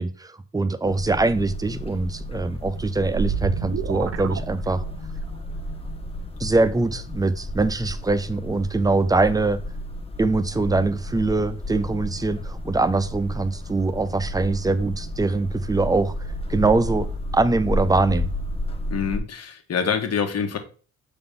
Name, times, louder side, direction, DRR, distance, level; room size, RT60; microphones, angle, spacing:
voice 1, 0.0-4.8 6.4-9.6 10.2-17.1 17.3-18.3, right 3 dB, 10° right, 13 dB, 0.6 m, -23 dB
sound 1, 0.9-19.2, left 1 dB, 20° left, 1.0 m, -32 dB
sound 2, 2.5-5.2, right 7 dB, 50° right, 0.7 m, -29 dB
voice 2, 18.9-20.6, left 6 dB, 55° left, 5 dB, 1.4 m, -26 dB
6.8 x 3.9 x 3.7 m, 0.39 s
cardioid pair, 90°, 30 cm